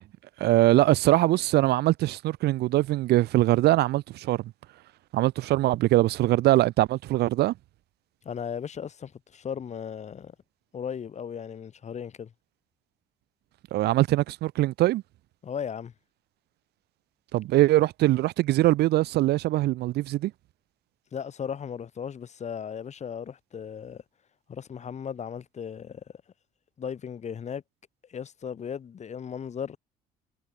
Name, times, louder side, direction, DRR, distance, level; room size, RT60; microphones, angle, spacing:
voice 1, 0.4-4.5 5.1-7.5 13.7-15.0 17.3-20.3, right 16 dB, 75° right, 1.3 m, -22 dB
voice 2, 8.2-10.3 10.7-12.3 15.4-15.9 21.1-24.0 24.5-26.0 26.8-27.6 28.1-29.8, left 7 dB, 40° left, 7.6 m, -36 dB
cardioid pair, 110°, 17 cm